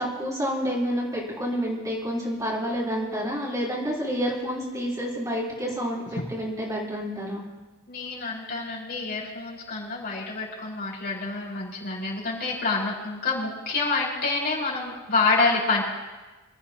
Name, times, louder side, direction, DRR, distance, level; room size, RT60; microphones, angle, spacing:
voice 1, 0.0-7.4, equal, 15° right, -6 dB, 3.9 m, -29 dB
voice 2, 7.9-15.8, left 3 dB, 50° left, -5 dB, 5.1 m, -27 dB
25.5 x 14.0 x 3.0 m, 1.2 s
head